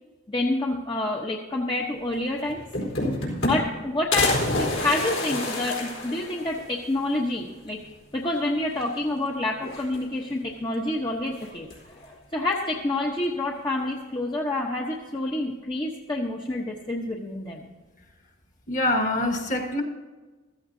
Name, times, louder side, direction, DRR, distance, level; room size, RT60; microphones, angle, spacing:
voice 1, 0.3-2.6 3.5-7.8 8.1-11.7 12.0-17.7, left 2 dB, 25° left, -1 dB, 1.0 m, -28 dB
sound 1, 2.1-2.2 2.5-3.8 4.1-6.7 7.1-7.2 7.5-7.6 8.7-9.2 9.6-10.3 11.4-11.9, left 2 dB, 75° left, 4.0 m, -28 dB
voice 2, 18.7-19.8, left 1 dB, 40° left, 3 dB, 1.7 m, -25 dB
15.0 x 14.0 x 2.7 m, 1.3 s
head